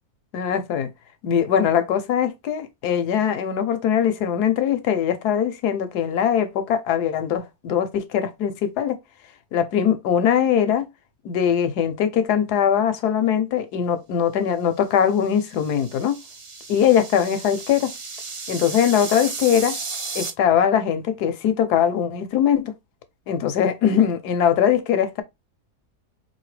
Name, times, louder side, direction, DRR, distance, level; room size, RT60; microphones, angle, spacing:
voice 1, 0.3-0.9 1.2-9.0 9.5-10.9 11.2-16.2 16.7-17.9 18.5-19.8 20.1-22.7 23.3-25.2, left 8 dB, 90° left, 1.4 m, -21 dB
sound 1, 15.2-20.3, right 4 dB, 50° right, 0.3 m, -34 dB
4.8 x 2.8 x 3.2 m
omnidirectional pair, 1.6 m